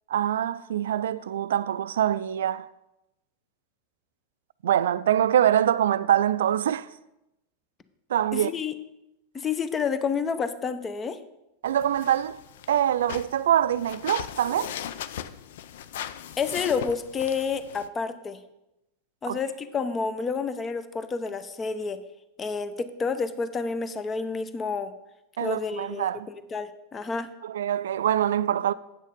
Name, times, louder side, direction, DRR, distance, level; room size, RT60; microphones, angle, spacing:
voice 1, 0.1-2.7 4.6-6.9 8.1-8.5 11.6-12.4 12.7-14.7 19.3-19.4 25.4-26.3 27.4-28.7, right 10 dB, 75° right, 0.3 m, -24 dB
voice 2, 8.3-8.7 9.3-11.2 16.4-18.4 19.2-22.0 22.4-24.9 25.4-27.3, left 5 dB, 25° left, 0.8 m, -29 dB
sound 1, 11.7-17.9, left 10 dB, 70° left, 0.4 m, -38 dB
8.7 x 6.4 x 5.2 m
hypercardioid pair, 95°, 0 cm